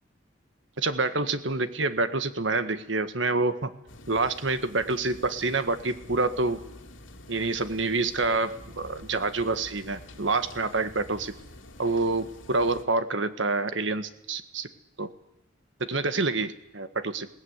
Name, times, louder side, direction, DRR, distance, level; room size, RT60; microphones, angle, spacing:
voice 1, 0.8-3.7 4.1-6.6 7.3-11.3 11.8-14.7 15.0-15.1 15.8-17.3, right 3 dB, 70° right, 11 dB, 1.7 m, -27 dB
sound 1, 3.9-12.8, left 1 dB, 90° left, 3.2 m, -48 dB
21.0 x 18.0 x 9.7 m, 0.86 s
head